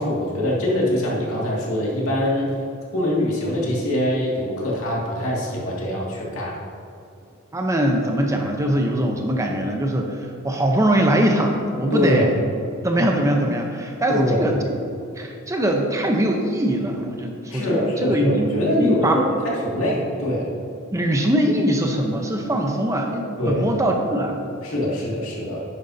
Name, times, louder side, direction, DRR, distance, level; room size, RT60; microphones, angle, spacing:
voice 1, 0.0-2.5 2.9-6.6 11.9-12.3 14.1-14.5 17.5-20.5 23.4-23.7 24.6-25.6, left 1 dB, 85° left, -4 dB, 2.2 m, -23 dB
voice 2, 7.5-12.3 12.8-14.6 15.2-19.2 20.9-24.4, right 1 dB, 15° right, 2 dB, 0.8 m, -22 dB
10.5 x 9.8 x 2.8 m, 2.5 s
head